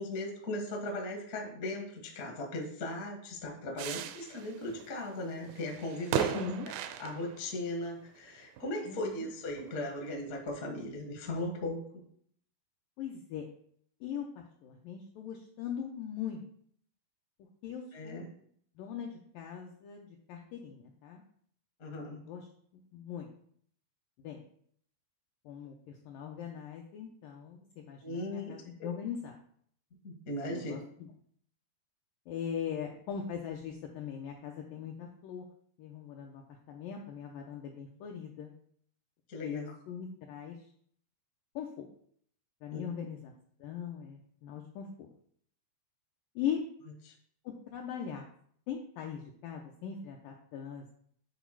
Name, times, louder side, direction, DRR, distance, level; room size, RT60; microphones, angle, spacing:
voice 1, 0.0-6.5 7.0-12.0 17.9-18.3 21.8-22.2 28.0-28.5 30.0-30.8 39.3-39.6 42.7-42.8, left 1 dB, 75° left, 0 dB, 0.8 m, -38 dB
sound 1, 3.8-7.7 8.3-8.4 8.6-9.2 9.6-10.0, right 10 dB, 85° right, 2.2 m, -37 dB
voice 2, 6.3-6.7 8.9-9.3 13.0-13.5 14.0-16.4 17.6-18.2 18.8-21.2 22.3-22.5 22.7-23.3 24.2-24.4 25.5-29.4 30.5-31.1 32.3-35.5 35.8-38.5 39.4-40.6 41.6-41.9 42.6-43.3 43.6-45.1 46.4-46.6 47.5-48.2 48.7-50.9, left 8 dB, 90° left, 1 dB, 1.9 m, -40 dB
9.4 x 4.0 x 4.6 m, 0.63 s
omnidirectional pair, 4.8 m